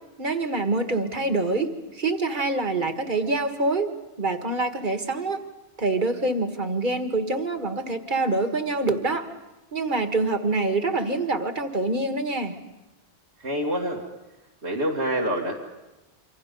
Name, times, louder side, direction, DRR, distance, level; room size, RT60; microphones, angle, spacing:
voice 1, 0.2-3.9 4.2-5.4 5.8-9.3 9.7-12.6, right 2 dB, 50° right, 6 dB, 1.8 m, -25 dB
voice 2, 13.4-14.0 14.6-15.6, equal, 90° right, -3 dB, 2.6 m, -26 dB
28.0 x 25.0 x 5.3 m, 1.0 s
omnidirectional pair, 1.1 m